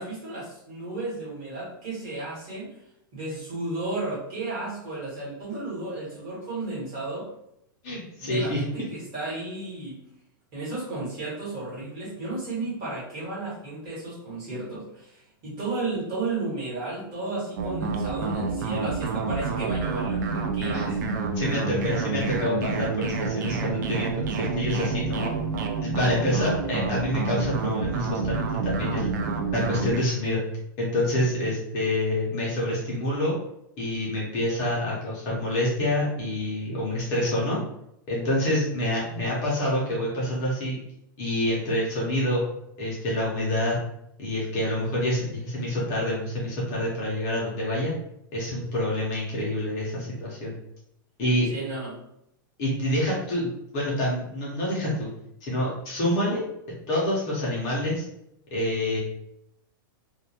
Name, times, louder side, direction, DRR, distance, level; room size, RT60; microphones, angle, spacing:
voice 1, 0.0-2.8 3.1-7.3 8.2-10.0 10.5-21.2 51.5-52.0, right 2 dB, 30° right, -8 dB, 1.2 m, -33 dB
voice 2, 7.8-8.6 20.7-20.9 21.3-25.3 25.8-29.1 29.5-30.4 30.8-33.3 33.8-37.6 38.1-40.8 41.2-42.4 42.8-43.8 44.2-47.9 48.3-50.6 51.2-51.5 52.6-55.1 55.4-56.4 56.9-58.0 58.5-59.0, left 1 dB, 25° left, -6 dB, 0.6 m, -27 dB
sound 1, 17.6-30.0, right 4 dB, 55° right, 0.4 m, -28 dB
2.2 x 2.2 x 2.8 m, 0.79 s
supercardioid pair, 170°, 12 cm